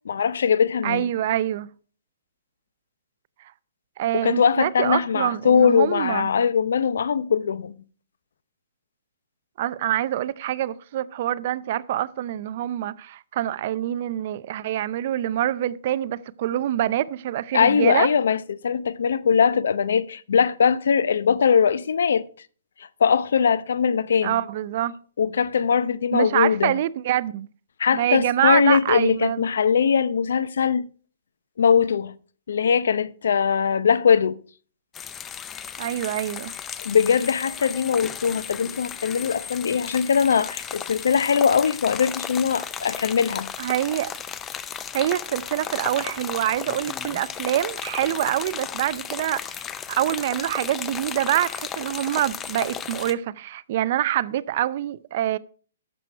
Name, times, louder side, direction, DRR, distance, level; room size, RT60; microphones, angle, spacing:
voice 1, 0.0-1.1 4.2-7.7 17.5-22.3 23.0-24.4 25.2-26.8 27.8-30.9 31.6-32.1 32.5-34.4 36.8-43.5, left 6 dB, 75° left, 0.7 m, -21 dB
voice 2, 0.8-1.7 4.0-6.3 9.6-18.1 24.2-24.9 26.1-27.5 27.9-29.5 35.8-36.5 43.6-44.1 44.9-55.4, right 12 dB, 40° right, 0.5 m, -25 dB
sound 1, 34.9-53.1, left 8 dB, 15° left, 0.5 m, -35 dB
12.0 x 7.6 x 4.5 m
hypercardioid pair, 165°, 0 cm